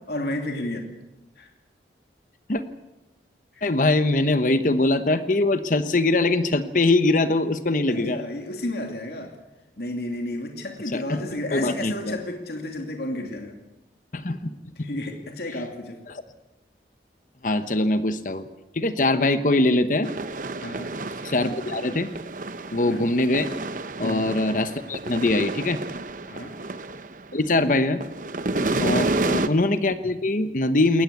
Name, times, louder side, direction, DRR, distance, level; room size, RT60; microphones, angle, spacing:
voice 1, 0.1-0.9 1.4-1.5 3.5-3.6 7.9-9.3 9.8-13.6 14.8-16.0 20.6-21.2 22.8-23.0 24.0-24.3 26.3-26.6 28.5-28.9, left 1 dB, 65° left, 3 dB, 2.7 m, -32 dB
voice 2, 3.6-8.2 10.9-11.2 11.5-12.2 14.1-14.9 16.1-16.2 17.4-18.5 18.7-20.1 21.2-22.1 22.7-23.5 24.0-25.8 27.3-28.0 28.8-31.0, left 2 dB, 45° left, 11 dB, 1.0 m, -22 dB
sound 1, 20.0-27.5 27.8-29.5, right 2 dB, 45° right, 0.9 m, -30 dB
21.5 x 18.5 x 8.3 m, 1.0 s
head